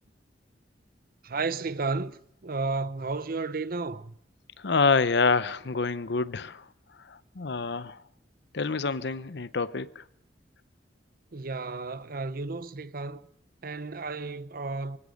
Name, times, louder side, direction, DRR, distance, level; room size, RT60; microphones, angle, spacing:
voice 1, 1.2-4.1 11.3-13.2 13.6-15.0, right 3 dB, 55° right, 0.8 m, -33 dB
voice 2, 4.6-6.7 7.0-8.0 8.5-10.0, left 4 dB, 70° left, 0.8 m, -27 dB
24.0 x 17.0 x 6.5 m
head